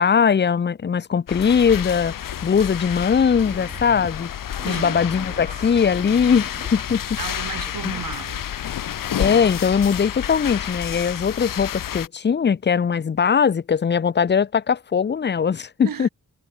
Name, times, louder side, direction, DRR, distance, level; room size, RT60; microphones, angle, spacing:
voice 1, 0.0-2.1 2.4-4.3 4.6-7.2 7.8-7.9 9.2-16.1, left 6 dB, 35° left, 0.5 m, -20 dB
sound 1, 1.3-12.1, left 10 dB, 75° left, 0.7 m, -30 dB
sound 2, 3.2-4.2 4.6-8.2, right 4 dB, 30° right, 2.2 m, -42 dB
voice 2, 4.6-5.0 7.2-8.5 15.8-16.1, right 8 dB, 90° right, 1.8 m, -33 dB
wide cardioid pair, 180°, 33 cm